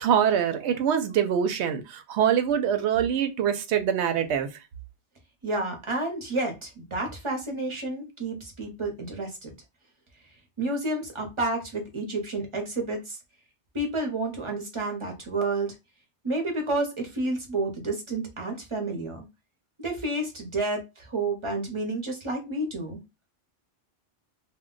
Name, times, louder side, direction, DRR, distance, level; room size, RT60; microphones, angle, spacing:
voice 1, 0.0-4.5, right 8 dB, 75° right, 0.8 m, -24 dB
voice 2, 5.4-9.5 10.6-13.2 13.7-15.7 16.2-19.2 19.8-23.0, right 2 dB, 30° right, 0.7 m, -30 dB
2.2 x 2.2 x 3.7 m
omnidirectional pair, 1.2 m